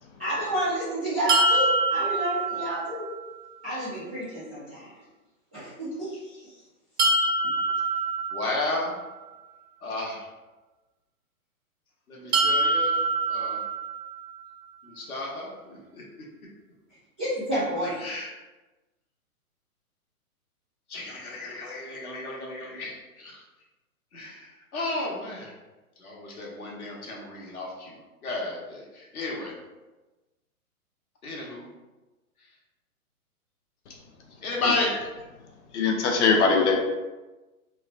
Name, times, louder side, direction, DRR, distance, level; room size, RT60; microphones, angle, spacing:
voice 1, 0.2-3.0 3.6-5.0 5.5-6.5 17.2-18.0, right 1 dB, 5° right, -14 dB, 0.3 m, -30 dB
sound 1, 1.3-3.2 7.0-9.1 12.3-14.4, right 3 dB, 90° right, 0.5 m, -25 dB
voice 2, 8.3-9.0 9.8-10.3 12.1-13.6 14.8-16.0 18.0-18.3 20.9-23.4 24.1-25.5 26.0-28.0 28.2-29.5 31.2-31.7 34.4-35.0, left 2 dB, 75° left, -3 dB, 1.0 m, -33 dB
voice 3, 35.7-36.8, left 4 dB, 50° left, 1 dB, 0.6 m, -21 dB
3.0 x 2.1 x 2.4 m, 1.1 s
figure-of-eight pair, 125°, 44 cm